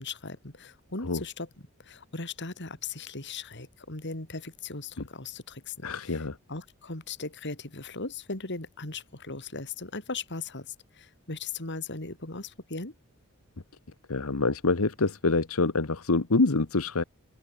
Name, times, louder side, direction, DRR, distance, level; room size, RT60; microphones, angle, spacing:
voice 1, 0.0-1.5 1.8-6.2 6.5-12.9, left 3 dB, 55° left, 4.0 m, -38 dB
voice 2, 5.8-6.4 14.1-17.0, left 3 dB, 75° left, 1.2 m, -26 dB
open air
head